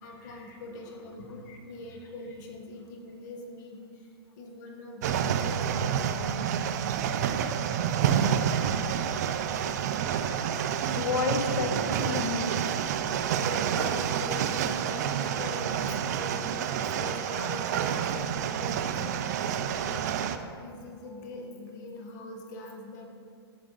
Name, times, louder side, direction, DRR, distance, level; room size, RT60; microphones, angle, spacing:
voice 1, 0.0-4.1 4.4-6.6 7.3-7.4 10.5-10.7 13.5-19.2 19.6-20.3 20.6-23.1, left 2 dB, 40° left, 1 dB, 1.3 m, -43 dB
sound 1, 5.0-20.4, right 8 dB, 40° right, 0.4 m, -28 dB
voice 2, 10.8-12.5 13.1-13.4, left 4 dB, 75° left, 5 dB, 1.1 m, -31 dB
13.0 x 4.8 x 3.9 m, 2.2 s
hypercardioid pair, 160°, 14 cm